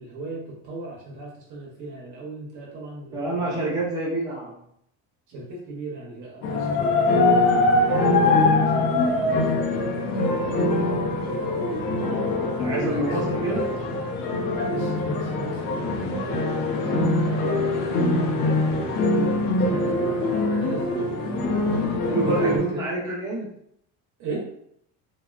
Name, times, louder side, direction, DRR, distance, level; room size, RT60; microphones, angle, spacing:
voice 1, 0.0-3.8 5.3-11.8 12.5-13.2 14.6-21.2 22.2-22.8 24.2-24.5, right 2 dB, 50° right, -3 dB, 0.8 m, -37 dB
voice 2, 3.1-4.6 12.6-13.7 22.1-23.5, right 1 dB, 10° right, -8 dB, 0.9 m, -27 dB
sound 1, 6.4-22.6, left 2 dB, 60° left, 0.7 m, -23 dB
3.4 x 2.2 x 2.3 m, 0.71 s
cardioid pair, 165°, 39 cm